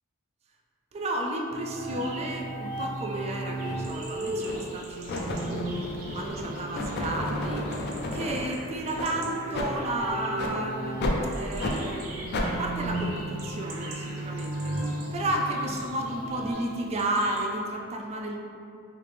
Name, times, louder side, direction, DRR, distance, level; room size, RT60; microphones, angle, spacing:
voice 1, 0.9-5.7 6.1-18.4, right 1 dB, 30° right, 1 dB, 0.3 m, -32 dB
sound 1, 1.5-16.5, right 1 dB, 5° right, 1.4 m, -36 dB
sound 2, 1.8-17.4, right 2 dB, 85° right, 0.6 m, -47 dB
sound 3, 3.6-3.8 4.4-4.7 5.1-8.5 8.9-9.1 9.5-9.7 10.3-10.6 11.0-11.2 11.6-11.8 12.3-12.5, left 1 dB, 50° left, 0.4 m, -32 dB
3.2 x 2.9 x 3.2 m, 2.6 s
head